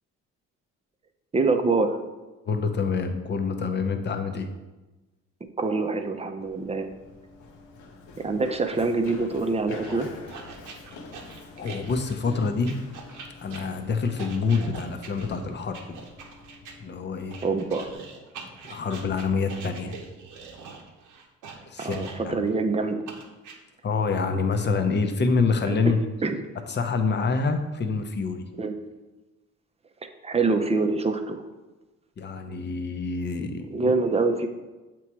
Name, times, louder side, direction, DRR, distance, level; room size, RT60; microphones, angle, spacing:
voice 1, 1.3-1.9 5.6-6.9 8.2-10.1 17.4-17.9 21.8-23.0 25.6-25.9 26.2-26.4 28.6-28.8 30.2-31.4 33.7-34.5, right 3 dB, 20° right, 6 dB, 0.5 m, -25 dB
voice 2, 2.5-4.5 11.6-12.7 13.4-16.1 16.8-17.4 18.7-20.0 21.7-22.4 23.8-26.0 26.7-28.5 32.2-33.9, left 4 dB, 35° left, 7 dB, 0.7 m, -26 dB
Run, 6.4-17.9, left 3 dB, 80° left, 0.8 m, -46 dB
sound 1, 9.8-16.7 17.3-22.5 23.1-23.6, right 5 dB, 85° right, 0.9 m, -43 dB
7.2 x 3.0 x 4.6 m, 1.1 s
cardioid pair, 90°, 30 cm